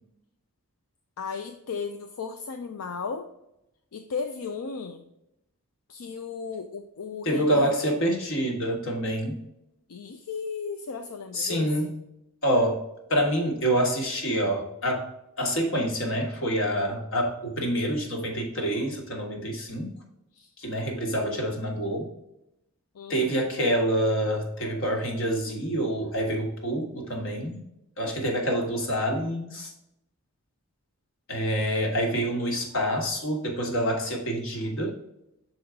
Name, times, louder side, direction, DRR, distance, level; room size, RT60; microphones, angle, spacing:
voice 1, 1.2-3.3 3.9-5.1 5.9-7.8 9.9-12.0 20.3-20.5 22.9-23.4, left 5 dB, 80° left, 6 dB, 0.5 m, -35 dB
voice 2, 7.2-9.4 11.3-11.9 12.4-12.8 13.1-15.1 15.4-19.9 20.6-22.1 23.1-27.6 28.0-29.7 31.3-34.9, equal, 60° left, 1 dB, 1.5 m, -27 dB
6.3 x 4.6 x 3.6 m, 0.85 s
head